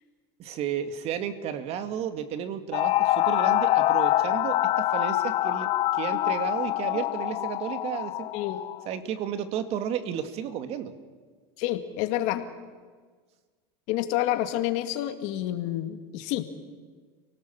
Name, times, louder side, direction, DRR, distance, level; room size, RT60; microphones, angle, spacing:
voice 1, 0.4-8.3 8.9-10.9, right 9 dB, 50° right, 9 dB, 2.2 m, -33 dB
sound 1, 2.7-8.8, left 15 dB, 45° left, 0.7 m, -25 dB
voice 2, 11.6-12.5 13.9-16.5, left 13 dB, 60° left, 8 dB, 2.0 m, -28 dB
29.0 x 18.5 x 7.2 m, 1.5 s
supercardioid pair, 105°, 14 cm